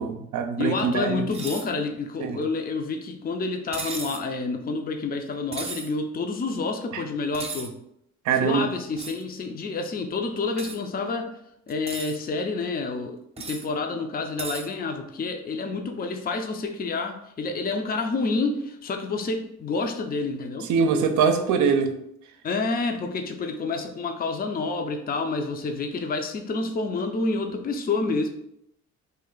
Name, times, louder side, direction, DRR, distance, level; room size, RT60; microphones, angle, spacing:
voice 1, 0.0-1.2 2.2-2.4 8.3-8.7 20.7-21.9, right 6 dB, 75° right, 7 dB, 0.6 m, -23 dB
voice 2, 0.6-7.8 8.3-11.3 11.7-20.7 22.4-28.3, left 3 dB, 30° left, 5 dB, 0.5 m, -29 dB
sound 1, 1.3-1.7 3.7-4.3 5.5-5.9 7.3-7.7 9.0-9.2 10.6-10.8 11.7-12.2 13.4-13.7 14.4-14.7, right 4 dB, 20° right, 0.5 m, -35 dB
3.2 x 2.3 x 3.8 m, 0.74 s
cardioid pair, 90°, 30 cm